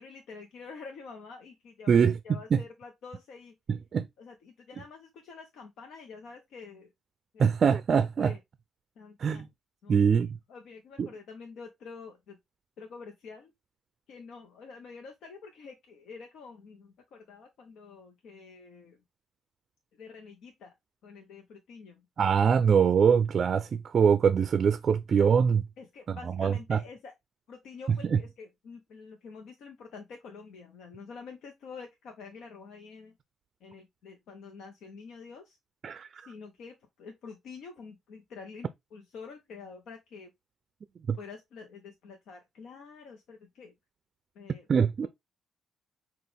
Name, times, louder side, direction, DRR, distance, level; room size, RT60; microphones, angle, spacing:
voice 1, 0.0-3.5 4.2-6.9 7.3-7.5 8.2-8.4 9.0-9.4 9.8-12.4 12.8-13.5 14.1-19.0 19.9-20.7 21.0-22.1 25.8-27.1 27.5-33.1 33.6-35.6 36.2-40.3 41.2-43.7 44.3-44.7, left 5 dB, 75° left, 0.9 m, -47 dB
voice 2, 1.9-2.2 2.5-2.6 3.7-4.1 7.4-8.3 9.2-9.4 9.9-10.4 11.0-11.1 22.2-25.6 26.1-26.8 28.1-28.2 35.8-36.3 41.1-41.2 44.7-45.1, right 6 dB, 50° right, 0.4 m, -23 dB
6.0 x 2.4 x 3.4 m
cardioid pair, 90°, 0 cm